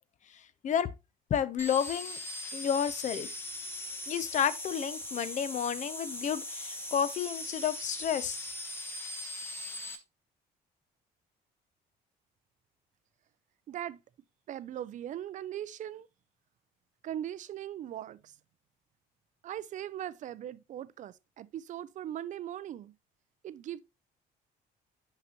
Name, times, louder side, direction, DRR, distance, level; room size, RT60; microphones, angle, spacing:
voice 1, 1.3-2.2 2.5-3.3 4.1-8.5, left 8 dB, 45° left, 0.6 m, -31 dB
sound 1, 1.6-10.0, left 1 dB, 15° left, 1.0 m, -40 dB
voice 2, 13.7-14.0 14.5-16.1 17.0-18.4 19.4-23.0 23.4-23.8, right 11 dB, 50° right, 0.4 m, -39 dB
5.9 x 5.8 x 2.9 m
cardioid pair, 110°, 17 cm